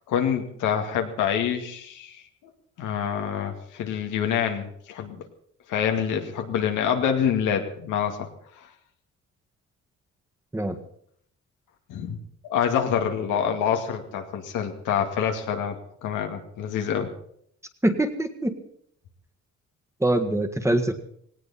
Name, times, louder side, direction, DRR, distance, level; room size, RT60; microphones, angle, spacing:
voice 1, 0.1-2.2 2.8-5.2 5.7-8.3 8.6-8.7 11.9-12.2 12.4-15.8 16.0-17.1, left 8 dB, 90° left, 4 dB, 2.2 m, -26 dB
voice 2, 17.8-18.5 20.0-20.9, right 1 dB, 10° right, 6 dB, 1.8 m, -23 dB
18.0 x 18.0 x 4.3 m, 0.66 s
cardioid pair, 90°, 30 cm